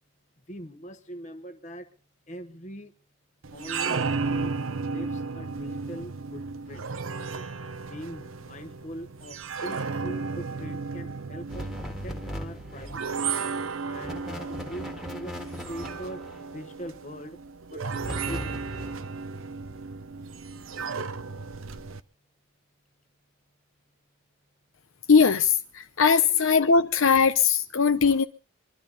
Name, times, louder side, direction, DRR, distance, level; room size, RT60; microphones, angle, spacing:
voice 1, 0.5-1.9 2.3-2.9 3.5-4.5 4.8-6.9 7.8-17.4 17.7-18.6, equal, 35° left, 1.2 m, -42 dB
sound 1, 3.4-22.0, right 4 dB, 70° right, 0.8 m, -34 dB
sound 2, 11.5-13.1 13.9-16.5 17.9-19.1, left 1 dB, ahead, 1.6 m, -38 dB
voice 2, 25.1-28.2, left 5 dB, 70° left, 0.7 m, -20 dB
24.0 x 12.5 x 4.0 m
head